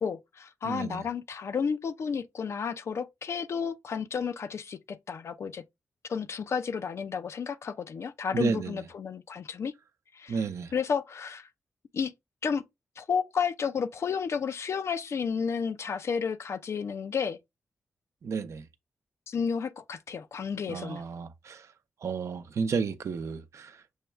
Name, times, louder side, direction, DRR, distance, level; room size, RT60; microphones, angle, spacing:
voice 1, 0.0-5.6 6.1-9.7 10.1-11.5 11.9-12.1 12.4-12.6 13.0-17.4 19.3-21.0, left 6 dB, 65° left, 0.5 m, -32 dB
voice 2, 0.6-1.0 8.3-8.7 10.3-10.7 18.2-18.6 20.7-21.6 22.0-23.7, right 5 dB, 70° right, 0.6 m, -32 dB
6.3 x 2.3 x 3.2 m
cardioid pair, 70°, 5 cm